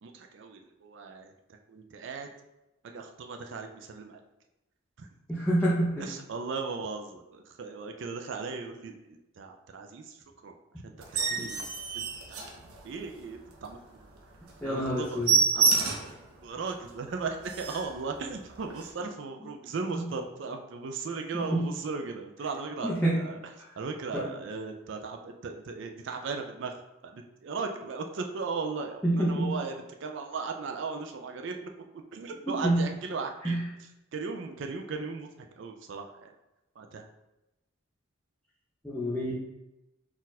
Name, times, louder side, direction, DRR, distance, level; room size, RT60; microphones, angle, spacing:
voice 1, 0.0-1.3 1.7-2.3 2.8-4.2 5.0-5.1 6.0-10.5 10.8-11.7 11.9-12.4 12.8-14.1 14.6-15.2 15.5-16.1 16.4-23.4 23.8-29.7 30.0-31.7 32.1-33.6 34.1-35.3 35.6-36.3 36.8-37.1, right 4 dB, 55° right, 4 dB, 0.4 m, -37 dB
voice 2, 5.3-6.1 14.6-15.3 19.9-20.0 21.3-21.6 22.8-23.2 24.1-24.2 29.0-29.5 32.5-32.9 33.4-33.6 38.8-39.3, right 1 dB, 5° left, -9 dB, 0.7 m, -27 dB
sound 1, 11.0-13.1 13.6-13.7 14.1-14.2 14.5-14.6 14.9-16.2 16.7-16.8 17.1-17.2 17.4-18.0 18.7-18.9, right 4 dB, 85° right, 0.7 m, -27 dB
4.2 x 2.4 x 4.0 m, 0.96 s
head